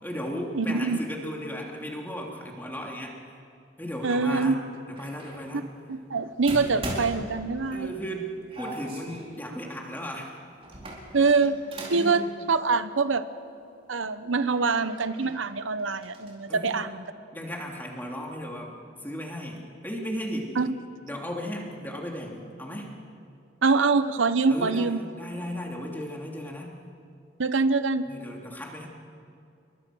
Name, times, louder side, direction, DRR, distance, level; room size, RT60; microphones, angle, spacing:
voice 1, 0.0-3.1 3.8-4.6 4.9-5.7 7.7-10.3 11.9-12.3 16.5-16.8 17.3-18.7 19.0-20.6 21.0-22.9 24.5-26.8 28.0-28.9, equal, 10° left, -1 dB, 3.1 m, -35 dB
voice 2, 0.5-1.0 4.0-4.6 5.9-7.9 11.1-11.6 11.9-12.2 12.5-13.2 13.9-17.0 20.6-20.7 23.6-25.0 27.4-28.0, right 4 dB, 90° right, 12 dB, 0.9 m, -24 dB
sound 1, 4.9-5.4 6.5-7.9 8.5-9.4 10.6-12.1 12.5-12.6 13.8-13.9 14.4-15.4 15.8-16.3, right 1 dB, 30° right, 4.6 m, -39 dB
29.0 x 23.0 x 6.3 m, 2.5 s
head